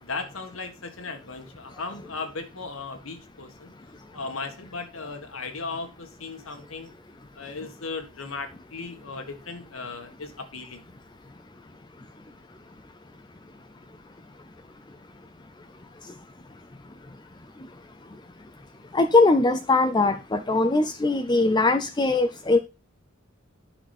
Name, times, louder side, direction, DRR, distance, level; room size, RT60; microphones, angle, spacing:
voice 1, 0.0-3.7 4.1-6.9 7.4-10.8, left 4 dB, 80° left, 1.8 m, -36 dB
voice 2, 18.9-22.6, left 3 dB, 20° left, 0.5 m, -21 dB
9.8 x 6.0 x 4.3 m
head